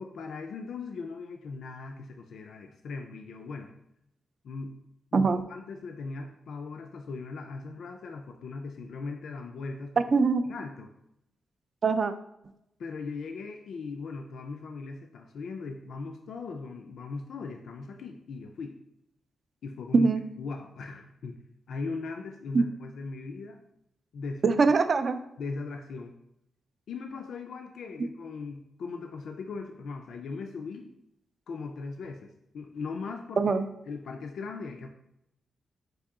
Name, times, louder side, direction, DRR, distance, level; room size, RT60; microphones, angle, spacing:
voice 1, 0.0-3.7 4.4-4.7 5.1-10.0 10.5-10.9 12.8-18.8 19.6-20.1 20.4-21.4 21.7-23.6 24.1-24.4 25.4-26.2 26.9-30.9 31.5-33.4 33.9-34.9, left 4 dB, 75° left, 4 dB, 0.3 m, -39 dB
voice 2, 5.1-5.4 10.1-10.4 11.8-12.1 19.9-20.2 22.5-22.6 24.4-25.2 33.4-33.7, right 4 dB, 45° right, 9 dB, 0.3 m, -22 dB
4.7 x 2.7 x 3.5 m, 0.82 s
cardioid pair, 110°, 0 cm